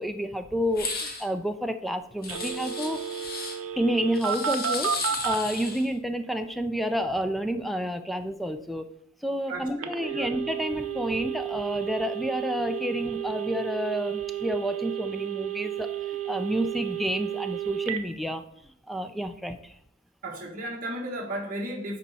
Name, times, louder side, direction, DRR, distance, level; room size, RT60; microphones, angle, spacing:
voice 1, 0.0-3.0 3.8-8.9 9.2-18.4 18.9-19.8, equal, ahead, 8 dB, 0.3 m, -30 dB
sound 1, 0.7-1.2 2.2-3.6 4.2-5.9, left 3 dB, 45° left, 1.4 m, -34 dB
Telephone, 2.3-5.4 9.8-18.0, right 9 dB, 70° right, 0.7 m, -32 dB
voice 2, 9.5-10.3 20.2-22.0, right 1 dB, 40° right, -3 dB, 1.4 m, -34 dB
9.9 x 4.2 x 4.1 m, 0.74 s
head